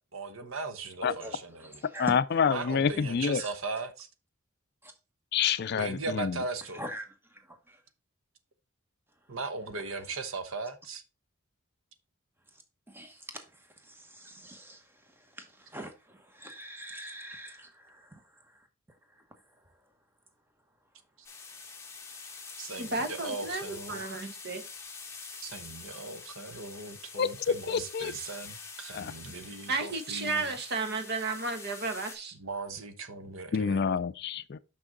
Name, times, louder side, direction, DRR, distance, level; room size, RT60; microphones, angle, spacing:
voice 1, 0.1-1.7 2.5-4.1 5.7-6.8 9.3-11.0 22.6-24.0 25.4-30.5 32.4-34.0, right 3 dB, 70° right, 1.0 m, -38 dB
voice 2, 1.0-2.1 3.4-3.5 6.7-7.0 7.5-7.8 12.9-13.4 13.9-14.8 15.4-18.2, right 1 dB, 10° right, 1.1 m, -43 dB
voice 3, 2.0-3.4 5.3-6.4 27.2-28.1 28.9-29.1 33.5-34.6, left 6 dB, 50° left, 0.4 m, -28 dB
sound 1, 21.2-32.1, left 5 dB, 10° left, 1.3 m, -46 dB
voice 4, 22.8-24.6 29.7-32.3, right 3 dB, 50° right, 1.2 m, -33 dB
6.2 x 6.0 x 3.9 m
head